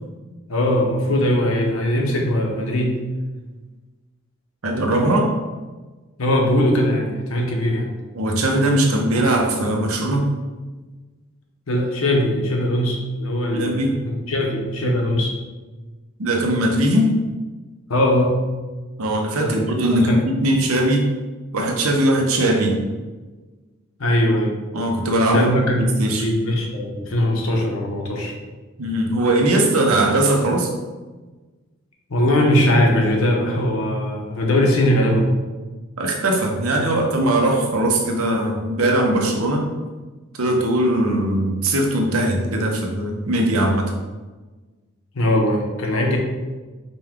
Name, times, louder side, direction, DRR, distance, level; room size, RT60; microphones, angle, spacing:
voice 1, 0.5-3.0 6.2-7.9 11.7-15.3 17.9-18.4 19.4-19.6 19.9-20.2 24.0-24.5 25.3-28.4 32.1-35.3 45.1-46.2, left 1 dB, 80° left, 0 dB, 0.8 m, -20 dB
voice 2, 4.6-5.3 8.1-10.2 13.5-13.9 16.2-17.1 19.0-21.1 21.5-22.8 24.7-26.2 28.8-30.7 36.0-39.6 40.4-43.9, right 1 dB, 90° right, 1 dB, 0.8 m, -20 dB
5.2 x 2.2 x 3.5 m, 1.3 s
head